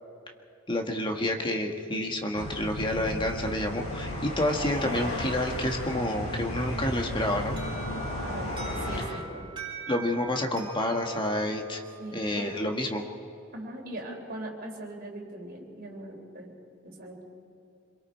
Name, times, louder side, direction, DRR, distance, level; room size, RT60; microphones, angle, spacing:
voice 1, 0.7-7.6 9.9-11.8 12.1-13.0, left 1 dB, 25° left, 3 dB, 1.6 m, -29 dB
sound 1, 2.4-9.1, left 1 dB, 70° left, 4.9 m, -34 dB
Alarm, 7.6-12.4, right 5 dB, 25° right, 6.4 m, -43 dB
voice 2, 8.2-9.5 12.0-12.6 13.5-16.5 16.8-17.2, right 1 dB, 45° right, 0 dB, 3.7 m, -40 dB
27.0 x 22.5 x 4.5 m, 2.8 s
head